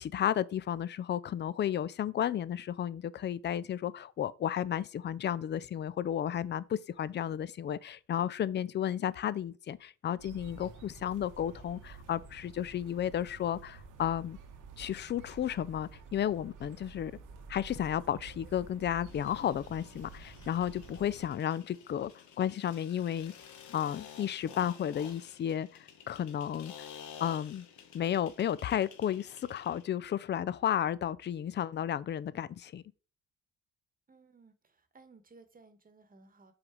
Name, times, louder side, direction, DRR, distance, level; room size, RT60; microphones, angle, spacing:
voice 1, 0.0-14.4 14.8-17.1 17.5-22.1 22.4-23.3 23.7-26.9 27.2-27.7 27.9-32.8, left 10 dB, 35° left, 0.4 m, -33 dB
sound 1, 10.2-21.3, right 4 dB, 85° right, 1.3 m, -50 dB
sound 2, 19.1-29.9, left 8 dB, 75° left, 1.1 m, -52 dB
voice 2, 34.1-36.5, right 3 dB, 30° right, 1.1 m, -59 dB
5.7 x 4.0 x 4.8 m
cardioid pair, 90°, 30 cm